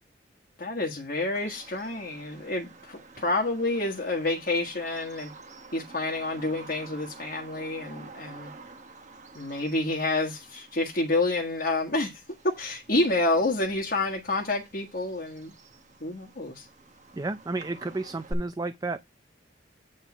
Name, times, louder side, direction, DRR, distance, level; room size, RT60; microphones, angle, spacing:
voice 1, 0.6-5.3 5.7-8.5 9.3-15.5 16.0-16.7, left 2 dB, 50° left, 1.5 m, -28 dB
Bird vocalization bird call bird song, 1.3-18.3, right 2 dB, 40° right, 1.3 m, -48 dB
voice 2, 17.1-19.0, right 3 dB, 20° right, 0.4 m, -32 dB
8.9 x 3.6 x 5.9 m
head